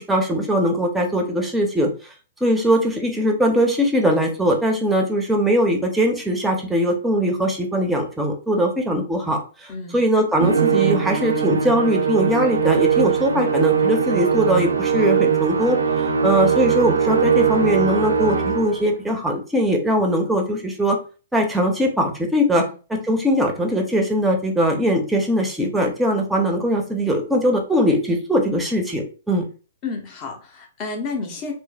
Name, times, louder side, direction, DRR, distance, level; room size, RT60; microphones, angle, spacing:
voice 1, 0.0-1.9 2.4-21.0 21.3-22.6 22.9-29.4, equal, 5° right, 1 dB, 0.6 m, -21 dB
Musical instrument, 10.4-18.9, right 7 dB, 90° right, 0.4 m, -20 dB
voice 2, 29.8-31.5, left 4 dB, 30° left, 1 dB, 0.8 m, -30 dB
3.0 x 2.1 x 2.2 m, 0.35 s
hypercardioid pair, 125°, 0 cm